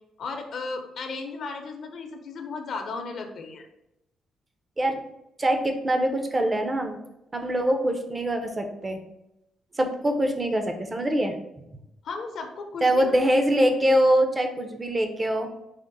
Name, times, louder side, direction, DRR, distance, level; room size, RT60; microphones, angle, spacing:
voice 1, 0.2-3.7 12.0-13.2, left 4 dB, 60° left, 4 dB, 0.7 m, -35 dB
voice 2, 5.4-7.0 7.3-9.0 9.7-11.3 12.8-15.5, right 1 dB, 25° right, 5 dB, 0.6 m, -23 dB
4.9 x 2.1 x 3.9 m, 0.87 s
cardioid pair, 90°, 0 cm